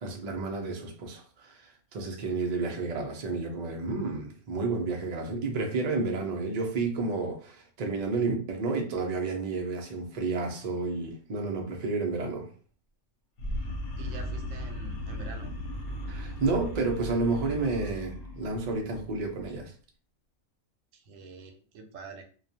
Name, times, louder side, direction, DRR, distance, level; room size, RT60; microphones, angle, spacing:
voice 1, 0.0-12.5 16.1-19.7, right 3 dB, 55° right, 0.4 m, -31 dB
sound 1, 13.4-19.7, equal, 80° left, 1.0 m, -37 dB
voice 2, 14.0-15.5 20.9-22.2, right 4 dB, 85° right, 1.0 m, -46 dB
2.3 x 2.2 x 2.7 m
omnidirectional pair, 1.3 m